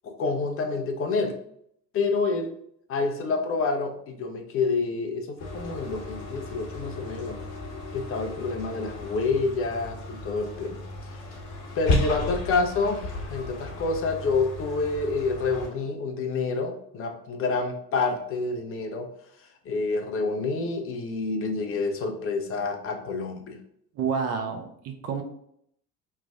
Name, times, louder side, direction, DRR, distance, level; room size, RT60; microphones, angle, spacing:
voice 1, 0.0-1.4 1.9-2.5 2.9-7.4 7.9-10.8 11.7-19.1 19.4-23.6, left 4 dB, 30° left, 4 dB, 0.5 m, -28 dB
sound 1, 5.4-15.7, left 2 dB, 50° left, 1.0 m, -34 dB
voice 2, 23.9-25.2, right 6 dB, 30° right, 4 dB, 0.5 m, -29 dB
3.1 x 2.4 x 3.4 m, 0.71 s
figure-of-eight pair, 65°, 50 cm